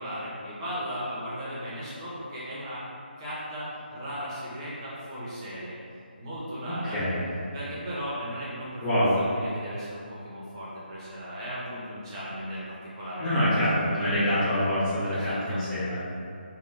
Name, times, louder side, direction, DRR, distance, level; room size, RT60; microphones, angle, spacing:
voice 1, 0.0-2.8 3.2-5.8 6.2-7.0 7.5-13.3 15.1-15.6, equal, 25° right, -9 dB, 0.8 m, -36 dB
voice 2, 6.7-7.2 8.8-9.1 13.2-16.0, equal, 15° left, -13 dB, 0.5 m, -26 dB
3.5 x 2.2 x 2.6 m, 2.4 s
figure-of-eight pair, 150°, 6 cm